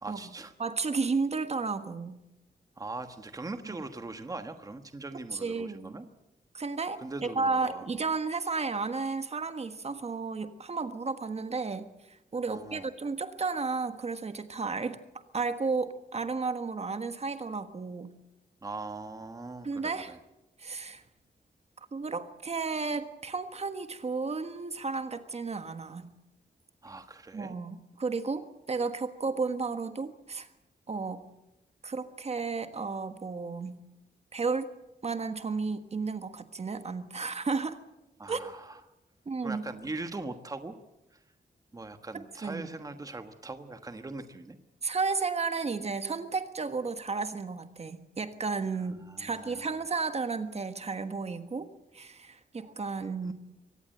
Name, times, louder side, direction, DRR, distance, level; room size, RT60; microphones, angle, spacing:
voice 1, 0.0-0.5 2.8-6.1 7.0-7.9 12.5-12.9 18.6-20.2 26.8-27.5 38.2-38.8 39.4-40.8 41.1-41.2 41.7-44.6 49.0-49.8 53.2-53.3, right 2 dB, 20° right, 8 dB, 1.3 m, -41 dB
voice 2, 0.6-2.2 3.7-3.8 5.3-6.0 6.5-15.0 15.3-18.2 19.6-20.1 20.6-21.0 21.9-26.1 27.3-30.5 30.9-31.2 31.8-33.8 34.3-34.7 35.0-37.8 38.3-38.5 39.2-39.6 42.1-42.7 44.8-51.7 51.9-53.3, right 4 dB, 40° right, 9 dB, 1.4 m, -33 dB
24.0 x 18.0 x 7.8 m, 0.92 s
wide cardioid pair, 165°, 17 cm